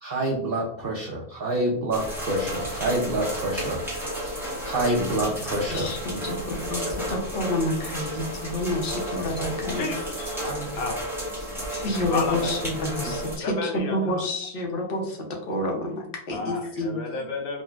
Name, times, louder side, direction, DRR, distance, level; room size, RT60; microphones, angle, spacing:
voice 1, 0.0-3.8 4.2-6.3 6.9-7.2 10.4-11.0 11.5-11.9 12.4-12.5 13.2-13.3, right 1 dB, 70° right, -2 dB, 0.5 m, -28 dB
sound 1, 1.9-13.4, equal, ahead, 0.6 m, -32 dB
voice 2, 5.7-9.9 11.7-15.2 15.5-17.0, left 1 dB, 55° left, 0 dB, 0.7 m, -29 dB
voice 3, 9.7-10.4 10.7-11.1 12.1-14.3 16.3-17.6, left 3 dB, 90° left, 4 dB, 1.1 m, -33 dB
3.7 x 2.1 x 2.3 m, 0.67 s
omnidirectional pair, 1.5 m